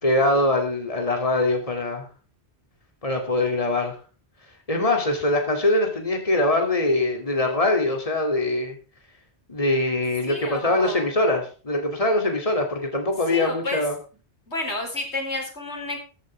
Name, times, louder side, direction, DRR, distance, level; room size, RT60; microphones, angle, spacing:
voice 1, 0.0-2.1 3.0-3.9 4.7-8.8 9.5-13.9, left 2 dB, 30° left, 3 dB, 2.9 m, -23 dB
voice 2, 10.3-11.1 13.3-13.8 14.5-16.0, left 2 dB, 80° left, 3 dB, 4.4 m, -30 dB
14.5 x 13.5 x 3.5 m, 0.35 s
omnidirectional pair, 1.1 m